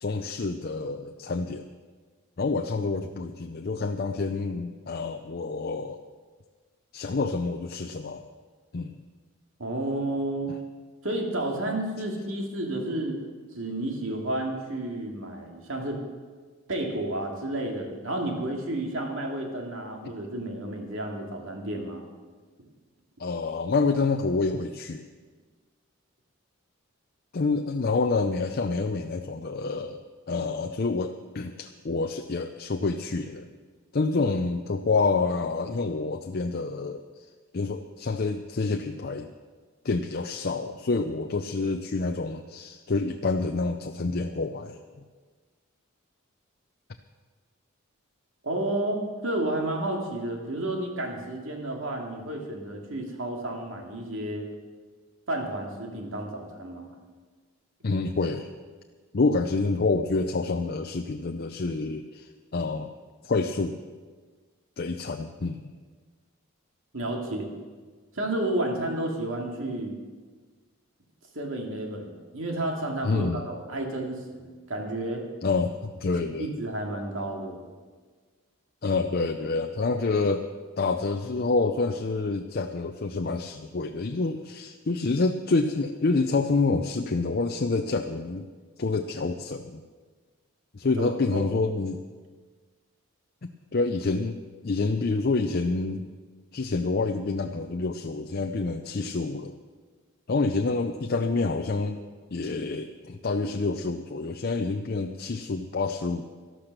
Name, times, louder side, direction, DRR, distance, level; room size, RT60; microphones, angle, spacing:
voice 1, 0.0-1.6 2.4-6.0 6.9-8.3 8.7-9.0 23.2-25.0 27.3-30.0 30.3-33.5 33.9-37.0 37.5-39.3 39.8-44.8 57.8-58.5 59.1-62.9 63.2-63.8 64.8-65.6 73.0-73.4 75.4-76.5 78.8-80.4 80.8-88.5 88.8-89.8 90.7-92.0 93.4-94.4 94.6-96.0 96.5-99.6 100.3-102.0 102.3-106.2, left 3 dB, 45° left, 5 dB, 0.5 m, -27 dB
voice 2, 9.6-10.5 11.0-13.2 13.5-16.0 16.7-22.0 48.4-54.4 55.3-56.9 66.9-67.5 68.1-69.9 71.3-75.3 76.2-77.6 91.0-91.5, right 1 dB, 65° right, 1 dB, 2.4 m, -31 dB
12.5 x 12.0 x 6.6 m, 1.5 s
head